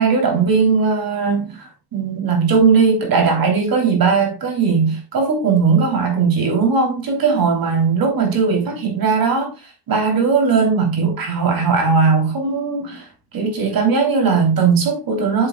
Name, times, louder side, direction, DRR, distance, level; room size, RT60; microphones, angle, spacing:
voice 1, 0.0-9.5 9.9-13.1 13.3-15.5, right 5 dB, 55° right, 3.1 m, -18 dB
7.7 x 7.6 x 2.2 m
cardioid pair, 155°, 43 cm